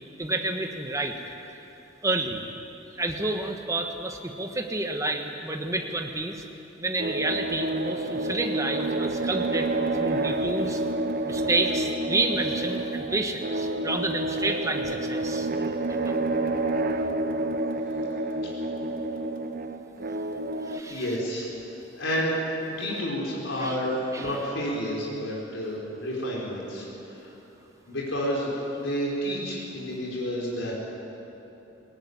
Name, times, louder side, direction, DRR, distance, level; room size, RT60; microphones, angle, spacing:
voice 1, 0.2-1.2 2.0-2.4 2.9-6.4 6.8-9.7 9.9-10.8 11.3-15.5 15.9-16.2 20.6-21.0 22.9-23.0 23.6-23.8 24.1-24.4, right 2 dB, 15° right, 4 dB, 1.5 m, -29 dB
sound 1, 7.0-20.8, right 2 dB, 45° right, 1.0 m, -29 dB
voice 2, 20.9-21.5 21.9-27.3 27.9-30.7, equal, 75° left, -4 dB, 4.9 m, -30 dB
19.0 x 18.5 x 9.8 m, 2.9 s
head